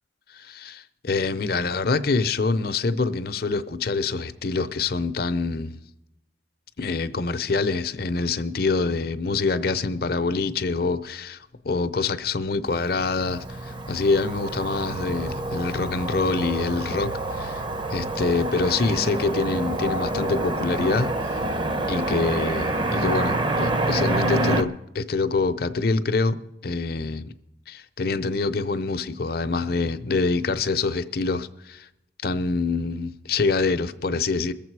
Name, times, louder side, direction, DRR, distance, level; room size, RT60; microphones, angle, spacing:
voice 1, 0.3-5.8 6.8-11.4 11.6-17.6 17.9-21.4 21.9-26.4 26.6-27.3 27.7-31.9 32.2-34.5, left 3 dB, 55° left, 0.6 m, -25 dB
Motor vehicle (road), 12.7-24.6, right 2 dB, 25° right, 0.7 m, -27 dB
22.0 x 7.4 x 4.7 m
head